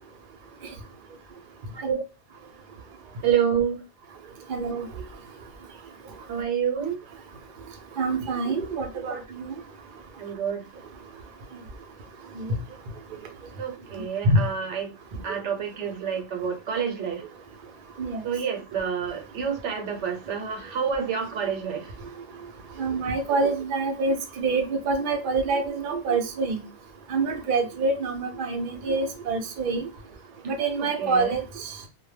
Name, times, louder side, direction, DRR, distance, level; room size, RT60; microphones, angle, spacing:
voice 1, 3.2-3.8 6.3-7.0 9.1-9.2 10.2-10.6 13.6-14.9 15.2-17.2 18.2-21.9 30.8-31.4, right 7 dB, 80° right, 4 dB, 0.9 m, -28 dB
voice 2, 4.5-4.9 8.0-9.5 12.4-12.6 14.2-14.4 15.3-15.4 18.0-18.2 22.8-26.6 27.1-29.9 30.4-31.8, right 3 dB, 55° right, 5 dB, 0.6 m, -26 dB
2.1 x 2.0 x 3.1 m, 0.28 s
omnidirectional pair, 1.2 m